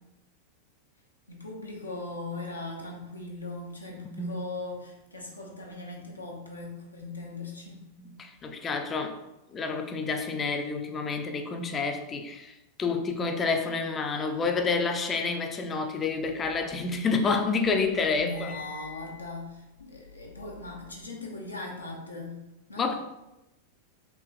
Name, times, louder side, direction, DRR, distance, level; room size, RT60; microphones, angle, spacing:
voice 1, 1.3-7.8 18.2-22.4 22.7-22.9, left 2 dB, 80° left, -1 dB, 0.5 m, -39 dB
voice 2, 8.0-9.2 9.5-12.5 12.8-18.6 22.8-22.9, left 4 dB, 20° left, 6 dB, 0.3 m, -29 dB
sound 1, 16.3-17.3 17.6-21.1, left 7 dB, 60° left, 1.1 m, -47 dB
3.3 x 2.8 x 2.3 m, 0.94 s
figure-of-eight pair, 90°, 0 cm